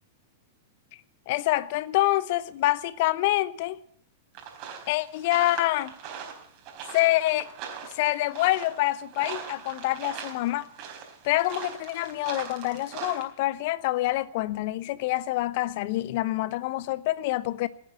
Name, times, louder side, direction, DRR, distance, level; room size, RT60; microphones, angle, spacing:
voice 1, 1.3-3.8 4.9-5.9 6.9-7.5 7.9-10.7 11.2-17.7, left 17 dB, 50° left, 0.8 m, -26 dB
sound 1, 4.3-13.2, right 7 dB, 40° right, 4.0 m, -41 dB
16.0 x 9.8 x 7.6 m
figure-of-eight pair, 100°, 0 cm